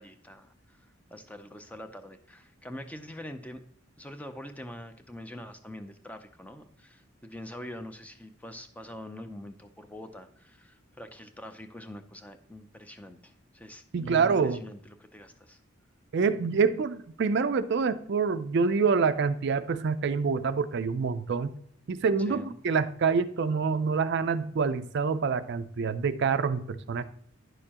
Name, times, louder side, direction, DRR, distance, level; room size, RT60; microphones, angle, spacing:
voice 1, 0.0-3.6 4.0-15.6 22.2-22.6, left 1 dB, 5° left, 8 dB, 0.5 m, -44 dB
voice 2, 13.9-14.6 16.1-21.5 21.9-27.0, right 5 dB, 55° right, 12 dB, 0.4 m, -26 dB
10.0 x 6.6 x 2.9 m, 0.65 s
head